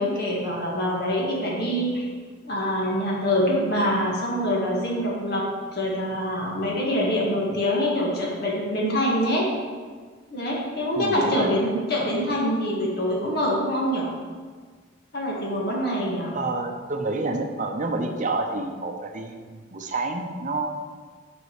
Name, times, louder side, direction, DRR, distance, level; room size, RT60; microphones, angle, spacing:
voice 1, 0.0-2.1 2.4-5.5 5.7-9.5 10.3-14.1 15.1-16.3, equal, 55° left, -3 dB, 1.9 m, -25 dB
voice 2, 11.0-11.5 12.3-12.4 16.3-20.7, right 2 dB, 40° right, 4 dB, 0.7 m, -29 dB
8.1 x 5.3 x 4.9 m, 1.5 s
head